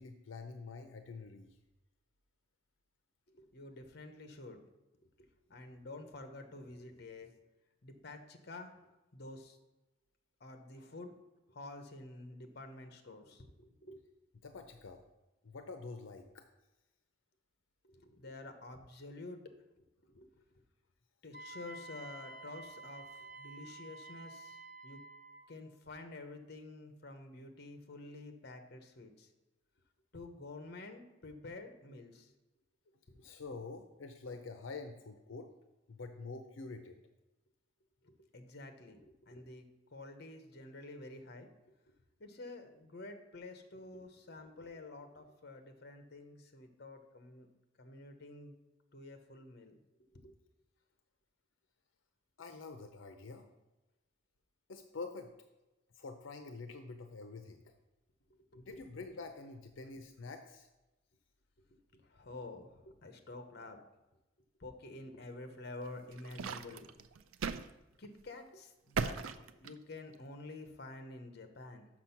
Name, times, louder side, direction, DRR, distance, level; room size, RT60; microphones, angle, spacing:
voice 1, 0.0-1.5 14.4-15.0 15.4-16.4 33.1-35.5 35.9-37.0 52.4-53.5 54.7-55.3 55.9-57.7 58.5-60.7, left 3 dB, 75° left, 6 dB, 0.6 m, -47 dB
voice 2, 3.3-4.6 5.2-7.3 7.8-8.8 9.1-9.6 10.4-11.1 11.5-14.0 17.8-19.4 20.1-20.4 21.2-25.0 25.5-29.3 30.1-32.3 33.2-33.3 38.0-39.6 39.9-47.5 47.8-48.5 48.9-49.8 50.1-50.3 58.3-58.9 61.7-63.8 64.6-66.9 68.0-69.2 69.6-71.9, left 2 dB, 55° left, 7 dB, 0.9 m, -49 dB
Wind instrument woodwind instrument, 21.3-25.5, right 2 dB, 45° right, 1.0 m, -50 dB
sound 1, 65.8-67.7 68.0-68.2 68.9-70.2, right 5 dB, 85° right, 0.4 m, -38 dB
6.2 x 6.1 x 5.8 m, 1.0 s
head